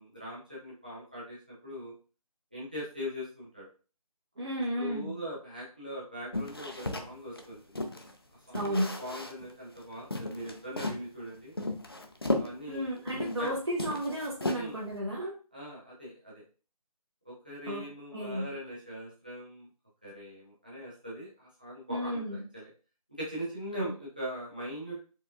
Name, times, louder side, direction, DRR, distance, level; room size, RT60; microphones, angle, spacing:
voice 1, 0.0-1.9 2.5-3.7 4.7-7.8 8.5-11.5 12.3-12.8 13.4-13.5 14.5-14.8 15.5-16.4 17.2-19.7 20.0-22.7 23.2-25.0, equal, 15° right, -7 dB, 0.7 m, -41 dB
voice 2, 4.4-5.1 8.5-8.9 12.7-15.3 17.7-17.8 18.1-18.5 21.9-22.4 23.8-23.9, equal, 45° right, -4 dB, 1.0 m, -33 dB
sound 1, 6.3-8.1 8.5-9.5 9.8-9.9 10.1-11.1 11.6-13.5 13.7-14.9, left 2 dB, 40° left, 0.5 m, -35 dB
4.6 x 3.5 x 2.6 m, 0.36 s
figure-of-eight pair, 175°, 20 cm